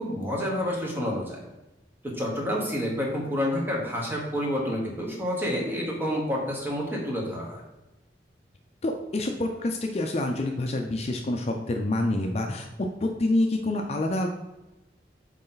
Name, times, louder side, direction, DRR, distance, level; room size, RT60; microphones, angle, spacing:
voice 1, 0.0-1.4 2.0-7.6, equal, 10° right, -2 dB, 1.3 m, -29 dB
voice 2, 8.8-12.7 13.0-14.3, left 2 dB, 35° left, 3 dB, 0.5 m, -27 dB
8.2 x 3.2 x 3.9 m, 1.0 s
head